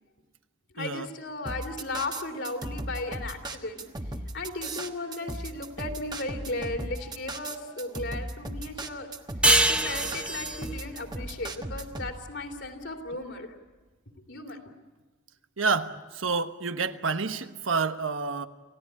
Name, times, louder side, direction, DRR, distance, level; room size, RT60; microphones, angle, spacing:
voice 1, 0.7-3.8 4.3-9.1 9.6-13.5 14.3-14.6, left 2 dB, 65° left, 3.1 m, -36 dB
sound 1, 1.5-12.1, right 2 dB, 20° right, 1.3 m, -36 dB
sound 2, 9.4-12.6, right 1 dB, 5° right, 0.7 m, -26 dB
voice 2, 15.6-18.5, right 4 dB, 90° right, 1.2 m, -29 dB
29.0 x 17.0 x 9.9 m
head